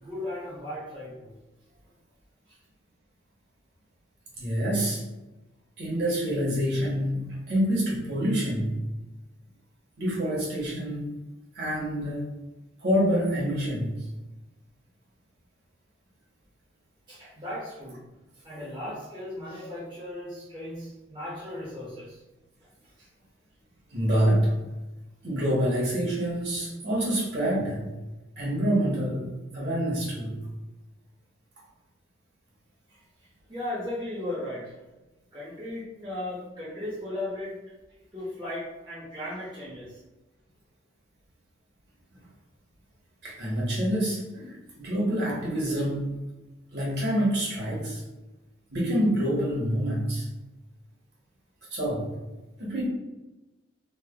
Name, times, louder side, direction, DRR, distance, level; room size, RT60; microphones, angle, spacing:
voice 1, 0.0-1.4 2.5-2.6 17.1-18.0 18.4-22.2 22.8-23.1 32.9-33.0 33.5-34.7 35.3-37.6 38.1-40.0, left 1 dB, 25° right, -8 dB, 0.6 m, -36 dB
voice 2, 4.4-5.0 5.8-8.8 10.0-11.1 11.5-12.2 12.8-13.9 23.9-24.5 25.2-27.9 28.4-30.4 43.2-46.2 46.7-48.0 48.7-50.3 51.7-52.1 52.6-52.9, equal, 60° right, -5 dB, 1.0 m, -27 dB
3.2 x 2.1 x 2.2 m, 1.1 s
head